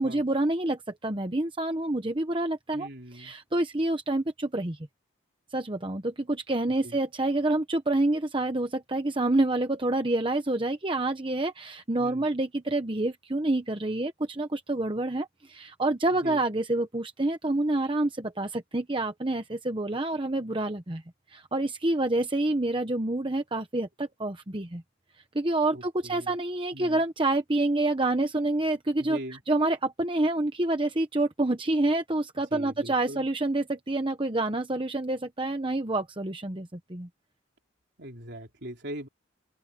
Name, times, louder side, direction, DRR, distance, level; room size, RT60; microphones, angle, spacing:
voice 1, 0.0-4.8 5.5-21.0 21.3-24.8 25.3-37.1, right 2 dB, 25° right, 1.0 m, -28 dB
voice 2, 2.7-3.3 6.8-7.0 12.0-12.3 16.2-16.4 25.7-26.3 26.7-27.0 29.0-29.4 32.5-33.3 38.0-39.1, right 1 dB, 55° right, 4.0 m, -41 dB
open air
head